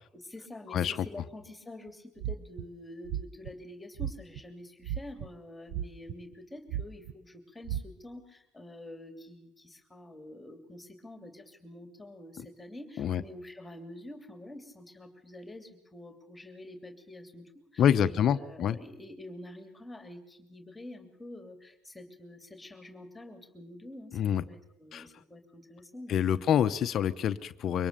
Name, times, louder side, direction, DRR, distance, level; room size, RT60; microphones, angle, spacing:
voice 1, 0.1-24.2 24.4-26.5, left 1 dB, 10° left, 6 dB, 3.0 m, -47 dB
sound 1, 2.2-2.7 3.1-3.5 4.0-4.4 4.8-5.3 5.7-6.3 6.7-7.1 7.7-7.8, right 11 dB, 65° right, 0.9 m, -34 dB
voice 2, 17.8-18.8 24.1-24.4 24.9-25.0 26.1-27.9, left 9 dB, 50° left, 11 dB, 0.8 m, -26 dB
24.0 x 18.5 x 6.8 m, 0.74 s
supercardioid pair, 95°, 0 cm